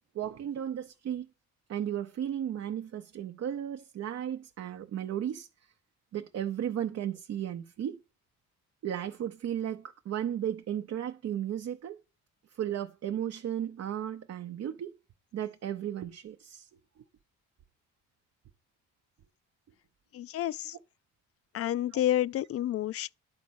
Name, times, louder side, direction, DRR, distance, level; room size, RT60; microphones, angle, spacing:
voice 1, 0.1-1.3 1.7-5.5 6.1-8.0 8.8-12.0 12.5-15.0 15.3-16.7 21.9-22.0, right 10 dB, 55° right, 0.7 m, -35 dB
voice 2, 20.1-20.7 21.5-23.1, left 12 dB, 50° left, 0.4 m, -29 dB
10.5 x 4.1 x 6.2 m
cardioid pair, 90°, 30 cm